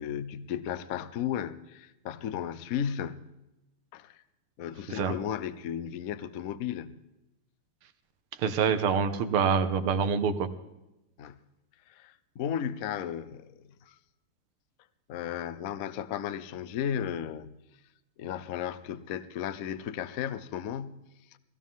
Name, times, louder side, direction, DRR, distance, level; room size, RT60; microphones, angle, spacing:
voice 1, 0.0-3.3 3.9-4.2 4.6-7.0 11.2-11.4 11.9-13.9 15.1-17.6 18.2-21.4, left 9 dB, 65° left, 0.8 m, -35 dB
voice 2, 8.4-10.5, right 6 dB, 85° right, 1.9 m, -26 dB
18.5 x 16.5 x 3.7 m
omnidirectional pair, 2.4 m